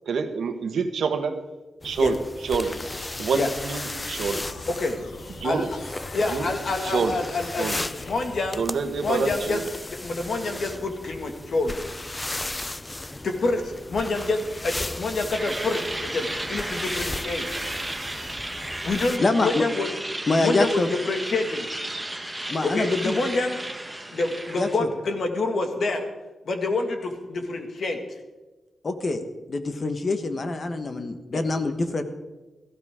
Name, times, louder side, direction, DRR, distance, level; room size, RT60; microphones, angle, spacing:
voice 1, 0.0-1.3 1.8-2.2 2.4-2.8 3.2-4.5 5.4-5.7 6.3-6.5 6.8-7.2 7.6-7.8 8.6-9.6, right 5 dB, 75° right, 7 dB, 1.3 m, -26 dB
sound 1, 1.8-19.2, left 2 dB, 15° left, 0.5 m, -36 dB
sound 2, 2.6-8.6, left 4 dB, 85° left, 1.3 m, -44 dB
voice 2, 4.7-5.0 5.4-5.6 6.1-7.8 8.0-8.6 9.0-11.8 13.2-17.7 18.8-19.9 20.4-21.7 22.6-23.6 24.1-26.1 26.5-28.0 31.3-31.4, left 3 dB, 55° left, 5 dB, 2.0 m, -27 dB
sound 3, 15.3-24.8, right 1 dB, 10° right, 1.4 m, -33 dB
voice 3, 19.2-19.6 20.3-20.9 22.5-23.1 24.5-24.9 28.8-29.2 29.5-32.0, left 3 dB, 40° left, 8 dB, 1.3 m, -25 dB
17.5 x 15.0 x 3.7 m, 1.2 s
wide cardioid pair, 130°, 0 cm